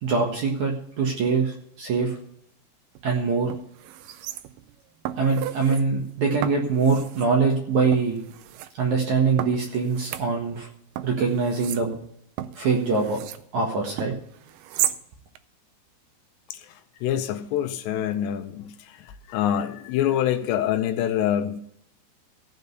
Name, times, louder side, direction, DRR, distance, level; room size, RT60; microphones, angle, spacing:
voice 1, 0.0-2.2 3.0-3.5 5.2-8.2 8.8-10.7 11.0-11.9 12.6-13.2 13.5-14.1, right 4 dB, 55° right, 0 dB, 2.2 m, -23 dB
sound 1, 3.0-3.1 3.5-4.7 5.1-5.8 6.4-7.3 7.9-8.7 9.4-10.7 11.0-13.5 14.0-15.0 15.4-15.5, right 12 dB, 85° right, 2.2 m, -34 dB
voice 2, 16.5-21.6, left 10 dB, 80° left, 9 dB, 2.8 m, -26 dB
15.0 x 5.3 x 8.0 m, 0.68 s
omnidirectional pair, 5.1 m